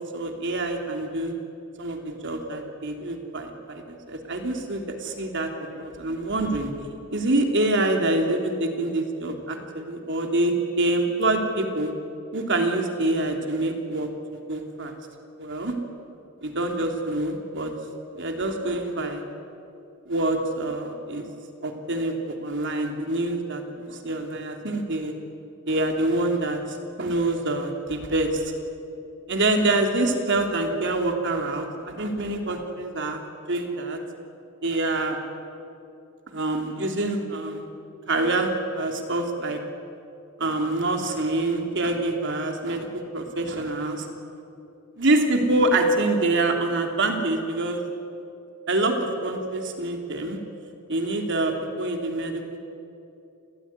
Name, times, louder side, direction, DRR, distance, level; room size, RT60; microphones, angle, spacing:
voice 1, 0.0-1.3 1.8-6.7 7.1-11.9 12.3-15.0 15.4-15.8 16.4-17.7 18.2-19.2 20.1-21.2 21.6-25.1 25.7-28.5 29.3-33.2 33.5-34.0 34.6-35.2 36.3-37.6 38.1-39.6 40.4-44.1 45.0-47.8 48.7-50.4 50.9-52.4, right 2 dB, 60° right, 3 dB, 3.2 m, -26 dB
29.5 x 15.5 x 9.7 m, 2.7 s
head